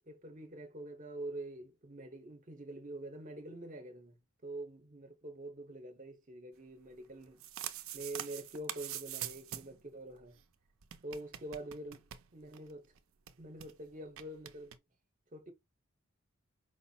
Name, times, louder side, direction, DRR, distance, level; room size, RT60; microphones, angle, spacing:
voice 1, 0.1-7.4 7.9-10.4 11.0-12.0 12.3-12.9 13.4-14.7 15.3-15.5, right 1 dB, 40° right, 0.9 m, -46 dB
sound 1, 7.2-9.8 10.1-10.2 10.4-10.5 10.8-12.7 13.0-13.1 13.3-13.7 14.2-14.8, right 11 dB, 80° right, 0.5 m, -44 dB
4.9 x 2.0 x 4.1 m
head